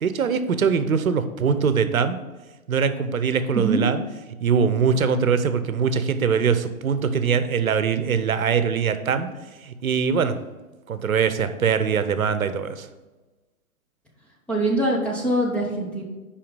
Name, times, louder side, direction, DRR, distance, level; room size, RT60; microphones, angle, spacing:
voice 1, 0.0-2.2 2.7-4.0 4.4-9.3 9.6-10.4 10.9-12.9, right 6 dB, 75° right, 10 dB, 0.8 m, -22 dB
voice 2, 3.5-3.8 14.5-16.0, right 1 dB, 5° left, -4 dB, 0.6 m, -23 dB
5.7 x 5.0 x 5.1 m, 1.2 s
figure-of-eight pair, 120°, 42 cm